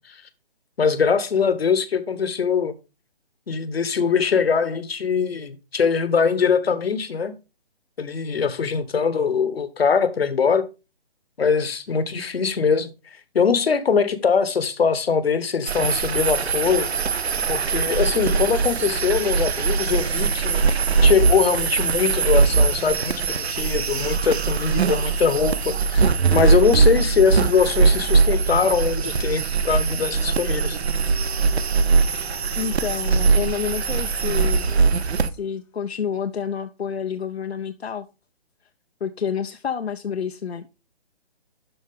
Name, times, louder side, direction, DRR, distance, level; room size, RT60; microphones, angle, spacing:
voice 1, 0.8-2.7 3.5-7.3 8.0-10.6 11.4-12.9 13.3-16.9 17.5-20.6 21.0-30.8, left 6 dB, 70° left, 1.2 m, -22 dB
sound 1, 15.7-35.3, right 5 dB, 85° right, 0.7 m, -21 dB
Dog, 29.9-35.1, left 4 dB, 5° left, 0.7 m, -47 dB
voice 2, 32.6-34.7 35.3-38.1 39.0-40.7, left 7 dB, 90° left, 0.7 m, -29 dB
11.5 x 4.4 x 3.6 m
figure-of-eight pair, 145°, 31 cm